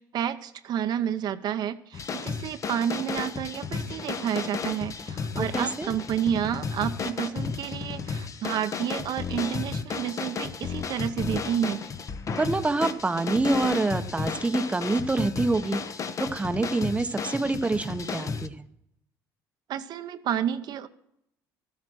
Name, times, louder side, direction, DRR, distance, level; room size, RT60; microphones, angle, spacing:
voice 1, 0.0-11.8 19.7-20.9, right 9 dB, 60° right, 9 dB, 0.8 m, -30 dB
sound 1, 1.9-18.5, left 5 dB, 40° left, 1.0 m, -33 dB
voice 2, 5.3-5.9 12.4-18.7, right 3 dB, 15° right, 9 dB, 0.8 m, -27 dB
13.5 x 8.8 x 6.1 m, 0.78 s
supercardioid pair, 85°, 8 cm